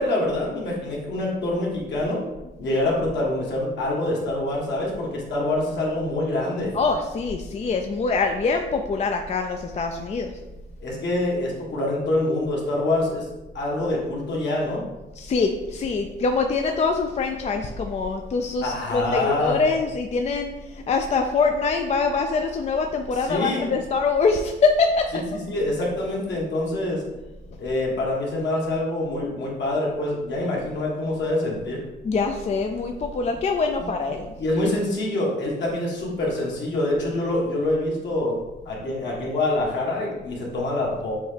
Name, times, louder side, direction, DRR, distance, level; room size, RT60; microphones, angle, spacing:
voice 1, 0.0-2.2 2.6-6.7 10.8-13.3 13.5-14.8 18.6-19.6 23.2-23.7 25.1-27.0 27.6-31.8 33.8-33.9 34.4-38.3 38.6-41.1, left 1 dB, 65° left, -4 dB, 1.6 m, -25 dB
voice 2, 6.7-10.3 15.2-25.1 32.0-34.3, left 4 dB, 35° left, 4 dB, 0.4 m, -24 dB
6.8 x 2.3 x 3.3 m, 1.1 s
cardioid pair, 90°, 20 cm